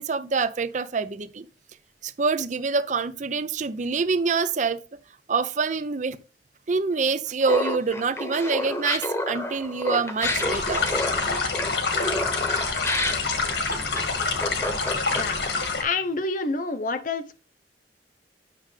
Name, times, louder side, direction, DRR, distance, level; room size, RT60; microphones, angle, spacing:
voice 1, 0.0-1.4 2.0-4.8 5.3-6.2 6.7-10.9, right 4 dB, 45° right, 0.5 m, -26 dB
Laughter, 7.4-15.5, left 1 dB, 15° left, 1.0 m, -29 dB
sound 1, 10.2-15.8, left 4 dB, 75° left, 1.7 m, -27 dB
voice 2, 15.8-17.4, left 3 dB, 50° left, 0.8 m, -28 dB
9.1 x 6.4 x 3.2 m
head